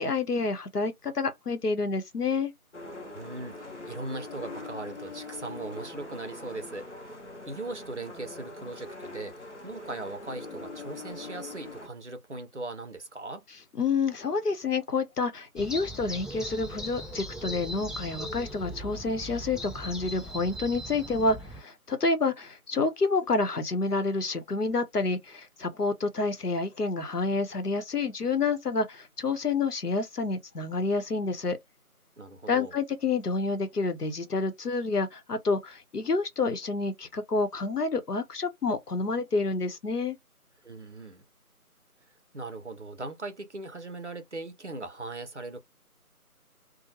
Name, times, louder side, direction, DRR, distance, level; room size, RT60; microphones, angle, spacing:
voice 1, 0.0-2.5 13.8-31.6 32.5-40.2, left 3 dB, 85° left, 0.8 m, -28 dB
sound 1, 2.7-11.9, left 2 dB, 50° left, 0.6 m, -42 dB
voice 2, 3.0-7.2 7.5-13.4 32.2-32.8 40.6-41.3 42.3-45.6, right 2 dB, 50° right, 0.6 m, -39 dB
sound 2, 15.6-21.6, equal, ahead, 0.4 m, -39 dB
2.9 x 2.1 x 2.8 m
figure-of-eight pair, 170°, 45 cm